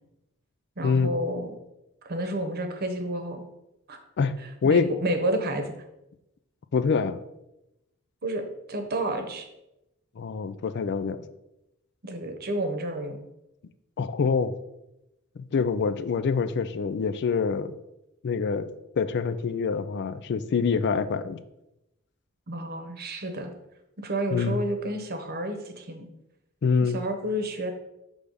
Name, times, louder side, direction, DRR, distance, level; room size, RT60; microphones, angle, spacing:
voice 1, 0.8-1.5 2.0-3.4 3.9-4.0 4.4-5.7 8.2-9.5 12.0-13.2 22.5-23.5 24.0-26.1 26.8-27.7, right 1 dB, 45° right, 5 dB, 0.9 m, -30 dB
voice 2, 4.2-4.9 6.7-7.2 10.2-11.2 14.0-14.5 15.4-17.7 18.2-18.7 19.0-21.4 24.3-24.6 26.6-27.0, left 5 dB, 50° left, 12 dB, 0.4 m, -25 dB
6.4 x 3.4 x 5.3 m, 0.89 s
head